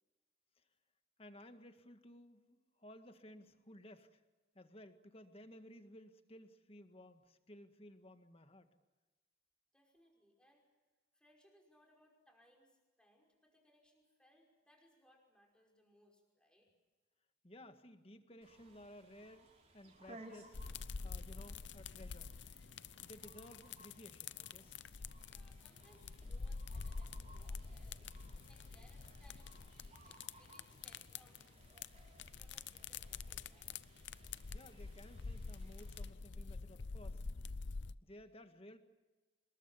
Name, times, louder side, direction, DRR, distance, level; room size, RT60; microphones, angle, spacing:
voice 1, 1.2-4.2 4.5-8.7 17.4-20.6 21.0-22.3 23.0-24.8 34.5-37.2 38.0-38.8, left 1 dB, 30° left, 8 dB, 1.8 m, -57 dB
voice 2, 9.7-10.6 11.1-16.7 25.3-31.9 32.4-33.8, equal, 5° left, 1 dB, 5.5 m, -70 dB
sound 1, 18.4-36.1, right 1 dB, 35° right, 5.1 m, -62 dB
sound 2, 20.5-37.9, left 4 dB, 65° left, 0.7 m, -47 dB
27.0 x 22.0 x 7.3 m, 1.2 s
head